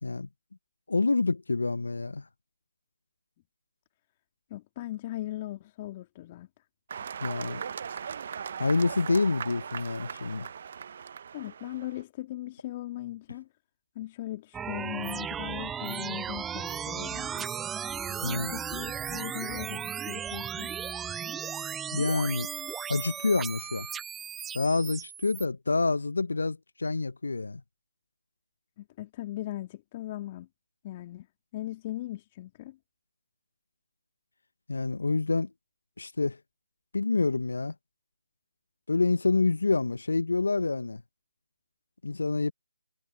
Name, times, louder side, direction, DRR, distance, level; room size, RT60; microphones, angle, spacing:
voice 1, 0.9-2.2 7.2-7.6 8.6-10.5 18.2-18.5 21.9-22.5 22.9-23.9 24.5-27.6 34.7-35.5 36.0-36.4 36.9-37.7 38.9-41.0 42.0-42.5, left 3 dB, 70° left, 1.0 m, -27 dB
voice 2, 4.5-6.5 11.3-13.5 14.0-17.5 18.2-20.7 28.8-30.5 30.8-31.3 31.5-32.8, left 15 dB, 25° left, 2.1 m, -38 dB
sound 1, 6.9-12.0, right 7 dB, 45° right, 0.8 m, -39 dB
sound 2, 14.5-25.4, right 8 dB, 10° right, 0.3 m, -36 dB
figure-of-eight pair, 150°, 0 cm